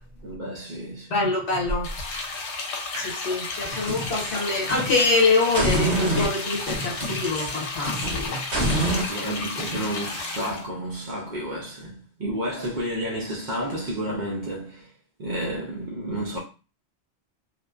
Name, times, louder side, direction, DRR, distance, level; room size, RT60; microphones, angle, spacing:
voice 1, 0.2-1.3 2.1-2.4 2.9-3.3 3.7-4.0 9.0-14.9 15.2-16.4, right 1 dB, 55° right, 0.6 m, -31 dB
voice 2, 1.1-1.9 3.2-8.4, left 3 dB, 70° left, 1.1 m, -24 dB
sound 1, 1.8-10.6, left 3 dB, 85° left, 0.9 m, -33 dB
sound 2, 3.7-5.1 5.5-9.1, right 1 dB, 70° right, 1.2 m, -27 dB
2.6 x 2.1 x 2.3 m
omnidirectional pair, 1.2 m